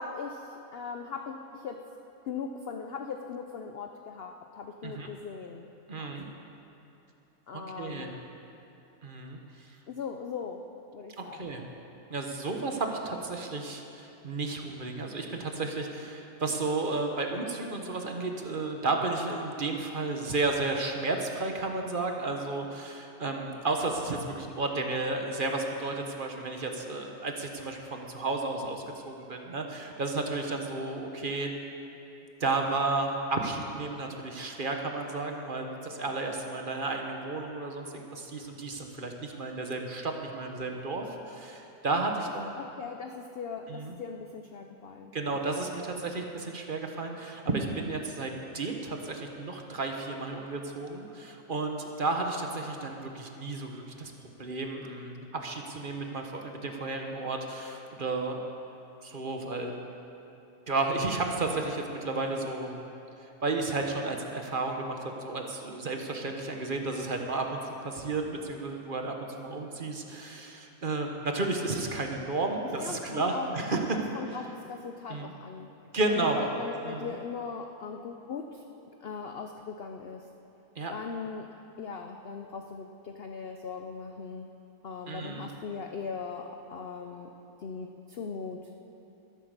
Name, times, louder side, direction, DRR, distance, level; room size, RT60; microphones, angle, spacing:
voice 1, 0.0-1.8 2.3-5.7 6.0-6.4 7.5-8.2 9.9-10.7 10.9-11.6 42.6-45.1 45.6-45.8 72.8-73.5 73.9-75.7 76.1-78.7 79.0-80.3 80.9-81.5 81.8-84.5 84.8-87.3 87.6-88.7, left 5 dB, 55° left, 4 dB, 0.7 m, -39 dB
voice 2, 5.9-6.2 7.5-8.2 9.0-9.8 11.2-11.6 12.1-31.5 32.4-42.6 43.7-44.0 45.1-54.1 54.4-58.4 59.0-59.8 60.7-62.7 63.2-74.0 74.3-74.4 75.1-75.3 75.9-76.5 76.8-77.1 80.8-80.9 85.1-85.5, right 3 dB, 35° right, 3 dB, 1.2 m, -32 dB
13.0 x 11.5 x 6.7 m, 2.8 s
omnidirectional pair, 1.6 m